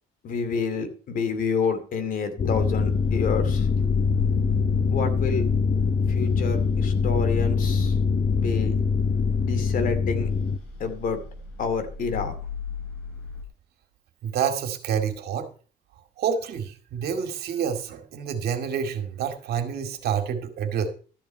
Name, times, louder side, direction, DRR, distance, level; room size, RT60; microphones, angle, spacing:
voice 1, 0.2-3.7 4.9-5.4 6.1-8.0 8.3-8.8 9.4-10.3 10.8-11.2 11.6-12.3, left 5 dB, 55° left, 9 dB, 2.5 m, -28 dB
sound 1, 2.4-10.6, left 5 dB, 35° left, 0.6 m, -23 dB
sound 2, 2.5-13.4, left 4 dB, 80° left, 3.1 m, -39 dB
voice 2, 14.2-15.5 16.2-20.9, right 7 dB, 70° right, 7 dB, 2.2 m, -28 dB
13.0 x 7.1 x 5.5 m, 0.38 s
cardioid pair, 110°, 17 cm